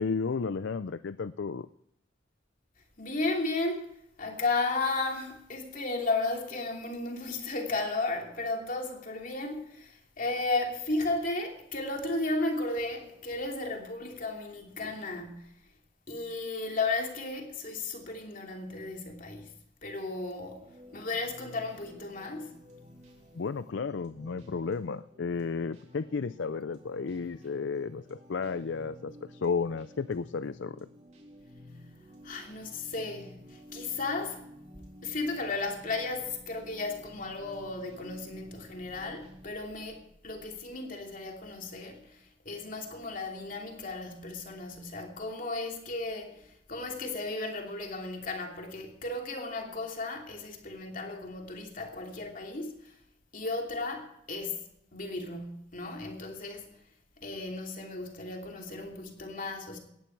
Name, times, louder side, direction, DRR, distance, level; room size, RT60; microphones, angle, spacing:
voice 1, 0.0-1.7 23.3-30.8, left 5 dB, 60° left, 0.5 m, -33 dB
voice 2, 3.0-3.9 4.2-15.7 16.1-20.7 20.9-22.6 32.2-34.4 35.0-53.0 53.3-56.7 57.2-59.8, left 3 dB, 45° left, 2.9 m, -34 dB
sound 1, 20.6-39.5, equal, 35° right, 3.4 m, -52 dB
18.5 x 14.0 x 4.7 m
head